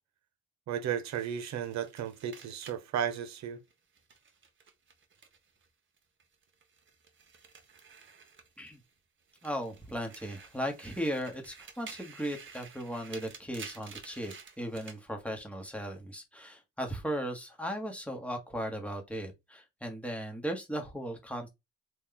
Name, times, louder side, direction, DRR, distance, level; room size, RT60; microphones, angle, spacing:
voice 1, 0.7-3.6, right 9 dB, 65° right, 0.7 m, -34 dB
sound 1, 1.1-5.7 6.0-8.9 9.3-15.0, right 5 dB, 40° right, 0.9 m, -51 dB
voice 2, 9.4-21.5, equal, 5° left, 1.1 m, -37 dB
3.1 x 2.3 x 3.7 m
cardioid pair, 90°, 30 cm